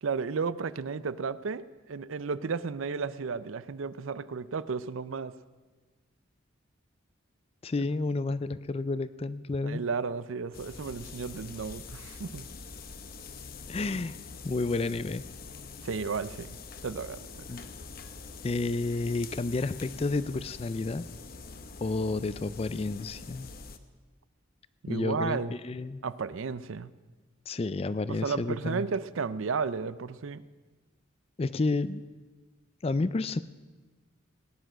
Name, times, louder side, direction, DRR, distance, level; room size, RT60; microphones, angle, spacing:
voice 1, 0.0-5.3 7.8-7.9 9.6-12.5 15.8-16.6 16.8-17.5 24.8-25.6 26.0-26.9 28.1-30.4, right 5 dB, 80° right, 16 dB, 0.5 m, -33 dB
voice 2, 7.6-9.8 13.7-14.2 14.4-15.2 17.5-17.7 18.4-21.0 21.8-23.5 24.9-26.0 27.5-28.9 31.4-32.0 32.8-33.4, left 3 dB, 30° left, 16 dB, 0.4 m, -30 dB
sound 1, 10.5-23.8, left 4 dB, 45° left, 0.9 m, -45 dB
18.0 x 10.5 x 6.2 m, 1.3 s
head